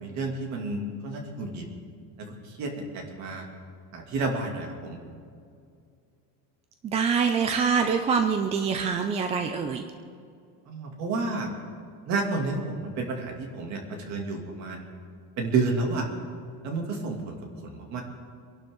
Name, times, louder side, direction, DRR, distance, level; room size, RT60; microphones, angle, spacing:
voice 1, 0.0-1.6 2.2-3.5 3.9-5.0 10.7-11.5 12.1-14.8 15.4-16.1 16.6-17.4 17.6-18.0, right 3 dB, 45° right, 1 dB, 2.7 m, -30 dB
voice 2, 6.8-9.8, right 6 dB, 15° right, 6 dB, 0.4 m, -25 dB
25.5 x 11.5 x 3.9 m, 2.3 s
cardioid pair, 175°, 39 cm